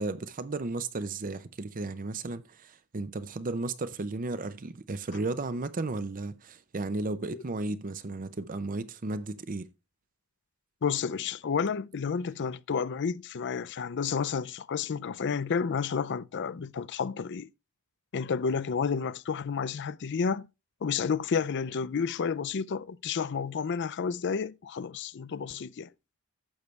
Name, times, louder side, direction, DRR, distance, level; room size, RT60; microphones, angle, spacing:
voice 1, 0.0-9.7, right 3 dB, 35° right, 0.6 m, -34 dB
voice 2, 10.8-17.5 18.1-20.5 20.8-25.9, left 6 dB, 50° left, 0.4 m, -31 dB
12.0 x 8.1 x 3.2 m
head